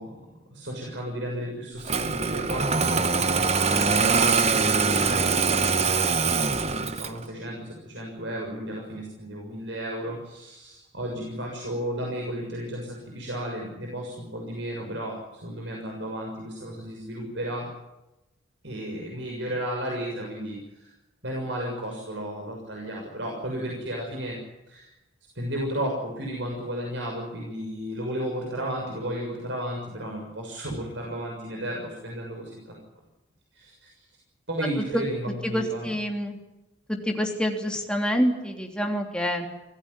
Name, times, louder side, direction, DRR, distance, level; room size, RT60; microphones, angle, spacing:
voice 1, 0.0-17.7 18.6-20.9 21.2-24.4 24.7-24.9 25.3-32.8 33.5-34.1 34.5-35.9, equal, 65° right, 0 dB, 6.6 m, -34 dB
Engine starting, 1.8-7.2, right 4 dB, 30° right, 1.1 m, -23 dB
voice 2, 35.4-36.4 36.9-39.5, equal, 5° left, 2 dB, 3.3 m, -27 dB
26.0 x 17.5 x 9.9 m, 0.96 s
head